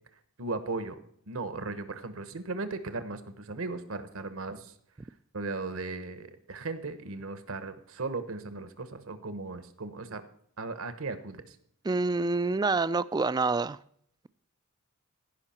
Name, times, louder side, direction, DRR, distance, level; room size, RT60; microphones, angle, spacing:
voice 1, 0.4-1.0 1.3-4.7 5.3-10.2 10.6-11.6, right 3 dB, 65° right, 1.1 m, -37 dB
voice 2, 11.8-13.8, right 3 dB, 20° right, 0.3 m, -27 dB
16.0 x 5.7 x 4.3 m
head